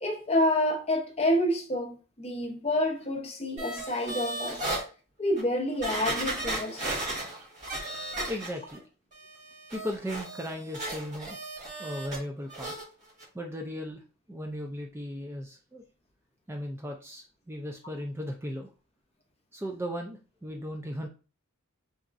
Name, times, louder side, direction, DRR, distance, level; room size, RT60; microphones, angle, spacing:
voice 1, 0.0-4.7 5.2-7.0, left 1 dB, 25° left, 0.7 m, -28 dB
sound 1, 3.6-4.8 5.4-5.5 5.8-8.8 9.1-12.2 12.5-12.8 13.2-13.3, right 2 dB, 35° right, 1.8 m, -35 dB
voice 2, 8.3-8.8 9.7-11.4 11.8-12.8 13.3-14.0 14.3-15.8 16.5-18.7 19.5-21.1, equal, 10° right, 0.4 m, -36 dB
4.0 x 3.5 x 2.5 m
head